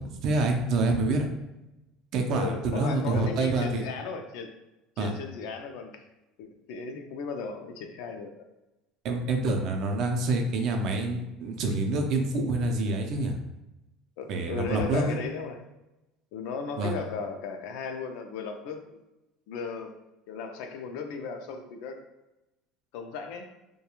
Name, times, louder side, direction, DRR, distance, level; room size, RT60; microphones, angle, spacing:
voice 1, 0.1-1.3 2.1-3.8 5.0-5.1 9.0-13.4 14.3-15.2 16.8-16.9, right 2 dB, 55° right, 3 dB, 0.5 m, -27 dB
voice 2, 2.3-4.5 5.0-6.0 6.4-8.3 14.2-15.6 16.3-19.0 19.5-19.9 20.3-22.0 22.9-23.5, left 5 dB, 75° left, 5 dB, 0.4 m, -36 dB
2.3 x 2.2 x 2.9 m, 0.96 s
cardioid pair, 135°, 0 cm